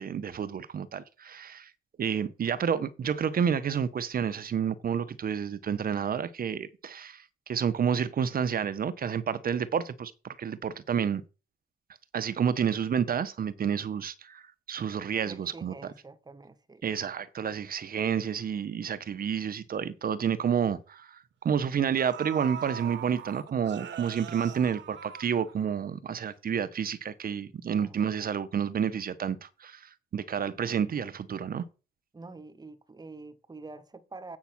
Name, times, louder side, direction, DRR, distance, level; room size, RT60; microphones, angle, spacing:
voice 1, 0.0-1.7 2.0-11.2 12.1-14.4 14.7-15.7 16.8-31.7, right 7 dB, 45° right, 1.0 m, -30 dB
voice 2, 15.2-16.8 27.8-28.0 32.1-34.4, right 3 dB, 20° right, 1.3 m, -46 dB
sound 1, 21.5-21.6 22.0-25.9 26.2-26.3, right 9 dB, 65° right, 1.3 m, -41 dB
8.5 x 5.8 x 6.0 m
cardioid pair, 90°, 20 cm